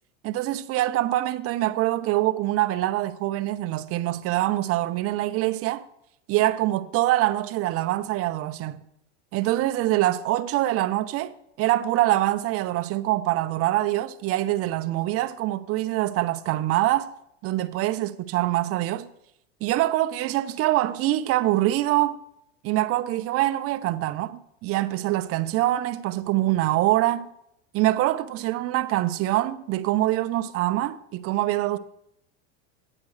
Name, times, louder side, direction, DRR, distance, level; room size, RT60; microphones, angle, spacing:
voice 1, 0.2-5.8 6.3-8.8 9.3-17.1 17.4-19.1 19.6-22.2 22.6-27.3 27.7-31.8, right 15 dB, 40° right, 0.6 m, -24 dB
9.6 x 7.5 x 4.8 m
supercardioid pair, 115°, 37 cm